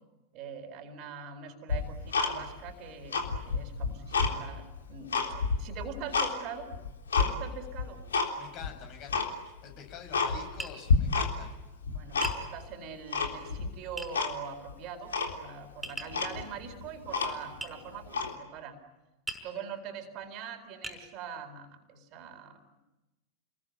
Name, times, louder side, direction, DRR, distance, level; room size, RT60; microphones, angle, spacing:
voice 1, 0.3-5.3 5.6-6.7 7.2-8.0 11.9-18.8 19.4-22.6, right 6 dB, 40° right, 6 dB, 4.2 m, -43 dB
Tick-tock, 1.7-2.7 3.0-4.3 4.8-6.3 6.7-7.3 7.8-8.3 8.6-8.7 9.1-9.3 9.7-9.8 10.1-10.6 10.9-11.5 11.8-12.6 13.1-13.7 14.1-14.3 14.7-14.8 15.1-15.4 15.8-15.9 16.1-17.6 18.1-18.3, left 4 dB, 70° left, 3.6 m, -29 dB
voice 2, 8.4-11.6, left 7 dB, 40° left, 4 dB, 7.8 m, -46 dB
Tap, 10.6-10.8 12.2-12.4 14.0-14.1 15.8-16.2 17.6-17.8 19.3-19.5 20.2-20.3 20.8-21.0, right 2 dB, 5° right, 5.9 m, -38 dB
29.5 x 22.0 x 9.2 m, 1.0 s
figure-of-eight pair, 90°, 0 cm